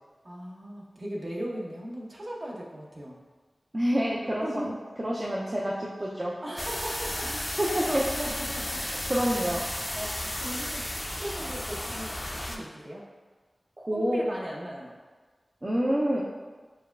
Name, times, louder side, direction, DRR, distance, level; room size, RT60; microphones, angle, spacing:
voice 1, 0.2-3.1 4.4-4.8 6.4-8.8 9.9-10.8 11.2-12.2 12.5-13.0 13.9-14.9, equal, 55° right, -4 dB, 0.9 m, -37 dB
voice 2, 3.7-4.7 5.0-6.3 7.6-8.0 8.8-9.6 13.8-14.2 15.6-16.2, equal, 35° right, -5 dB, 0.5 m, -27 dB
sound 1, 6.6-12.6, left 1 dB, 25° left, 0.4 m, -33 dB
6.7 x 2.2 x 2.3 m, 1.4 s
cardioid pair, 45°, 0 cm